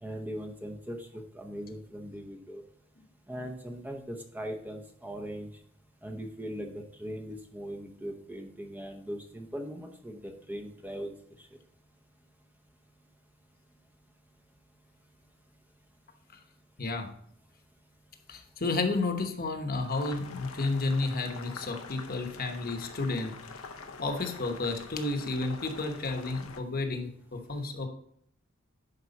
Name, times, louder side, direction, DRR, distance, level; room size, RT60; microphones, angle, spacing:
voice 1, 0.0-2.6 3.3-5.5 6.0-11.5, equal, 10° right, 2 dB, 0.7 m, -40 dB
voice 2, 18.3-23.3 24.0-27.9, left 3 dB, 45° left, 5 dB, 1.1 m, -31 dB
Boiling, 19.8-26.6, left 4 dB, 85° left, 0.9 m, -45 dB
11.0 x 4.7 x 4.1 m, 0.68 s
head